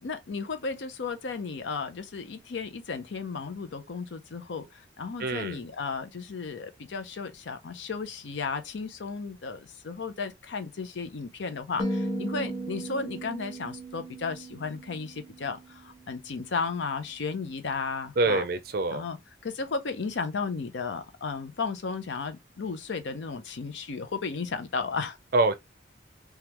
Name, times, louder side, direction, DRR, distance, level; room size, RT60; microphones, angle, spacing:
voice 1, 0.0-18.4 18.9-19.2 19.4-25.2, left 4 dB, 75° left, 0.6 m, -34 dB
voice 2, 5.2-5.6 18.2-19.0 25.3-25.5, right 3 dB, 55° right, 0.4 m, -25 dB
sound 1, 11.8-16.1, right 1 dB, 25° left, 1.1 m, -36 dB
3.5 x 2.3 x 2.9 m
head